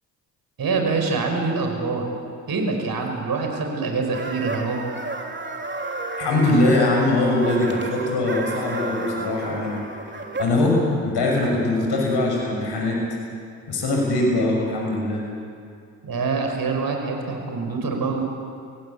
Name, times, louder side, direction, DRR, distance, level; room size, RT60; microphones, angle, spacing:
voice 1, 0.6-2.1 2.5-4.9 16.0-18.2, right 4 dB, 50° right, 3 dB, 5.6 m, -25 dB
sound 1, 4.1-10.7, right 3 dB, 25° right, 3.2 m, -32 dB
voice 2, 6.2-9.8 10.4-13.0 13.7-15.2, left 2 dB, 60° left, 0 dB, 6.5 m, -21 dB
25.0 x 17.5 x 8.4 m, 2.3 s
hypercardioid pair, 50°, 46 cm